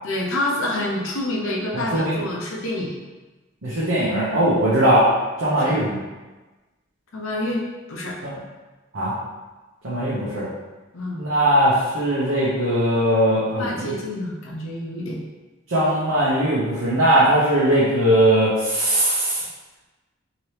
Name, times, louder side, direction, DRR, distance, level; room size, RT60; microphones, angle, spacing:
voice 1, 0.0-3.0 5.6-5.8 7.1-8.2 10.9-11.2 13.6-15.2, left 1 dB, 85° left, -2 dB, 0.7 m, -27 dB
voice 2, 1.7-2.2 3.6-5.1 5.4-6.0 8.2-8.4 8.9-9.1 9.8-10.4 11.1-13.9 15.7-19.4, right 1 dB, 70° right, -9 dB, 0.8 m, -20 dB
2.9 x 2.8 x 3.2 m, 1.2 s
head